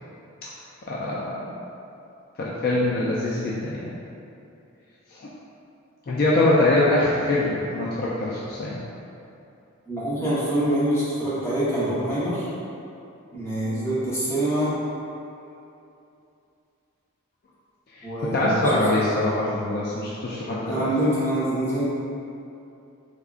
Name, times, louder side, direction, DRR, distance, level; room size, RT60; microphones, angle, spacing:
voice 1, 0.9-1.6 2.4-3.9 5.1-5.3 6.1-8.8 13.7-13.8 17.9-18.1 18.3-20.9, left 2 dB, 45° left, -6 dB, 0.3 m, -23 dB
voice 2, 9.9-12.5 13.3-14.7 18.0-19.1 20.6-21.8, right 1 dB, 10° left, -12 dB, 1.1 m, -25 dB
3.6 x 3.5 x 2.4 m, 2.7 s
head